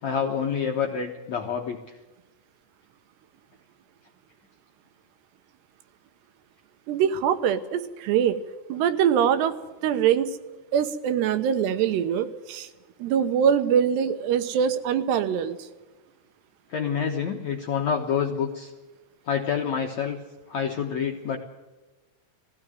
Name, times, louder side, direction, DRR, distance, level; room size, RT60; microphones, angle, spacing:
voice 1, 0.0-1.8 16.7-18.7 19.3-21.4, left 7 dB, 65° left, 1 dB, 1.7 m, -27 dB
voice 2, 6.9-8.4 8.7-9.6 9.8-10.3 10.7-12.7 13.0-15.7, right 8 dB, 80° right, 10 dB, 3.1 m, -23 dB
18.0 x 16.0 x 9.3 m, 1.2 s
omnidirectional pair, 4.9 m